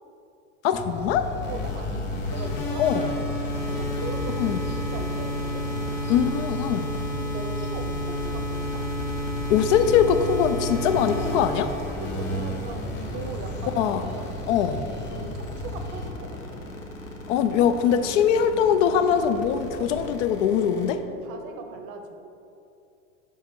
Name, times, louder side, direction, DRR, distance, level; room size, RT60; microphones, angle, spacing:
voice 1, 0.6-1.3 2.8-3.1 4.4-4.6 6.1-6.9 9.5-11.7 13.8-14.0 14.5-14.8 17.3-21.0, left 8 dB, 65° left, 9 dB, 0.5 m, -22 dB
sound 1, 0.7-16.1, left 2 dB, 30° left, 0.9 m, -35 dB
sound 2, 1.4-20.9, equal, 85° left, 1.0 m, -32 dB
voice 2, 1.5-4.4 4.9-5.7 7.2-8.9 11.9-14.3 14.8-16.6 21.2-22.2, right 4 dB, 55° right, 6 dB, 0.8 m, -39 dB
5.3 x 4.6 x 4.6 m, 2.7 s
hypercardioid pair, 85°, 38 cm